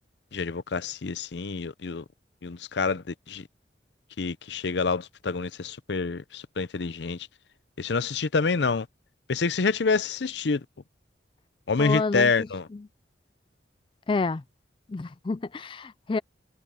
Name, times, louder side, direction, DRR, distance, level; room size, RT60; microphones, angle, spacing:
voice 1, 0.3-2.0 2.4-3.4 4.2-7.2 7.8-8.9 9.3-10.6 11.7-12.7, left 4 dB, 70° left, 0.6 m, -27 dB
voice 2, 11.8-12.3 12.7-12.9 14.1-14.4 14.9-16.2, left 3 dB, 30° left, 0.4 m, -29 dB
head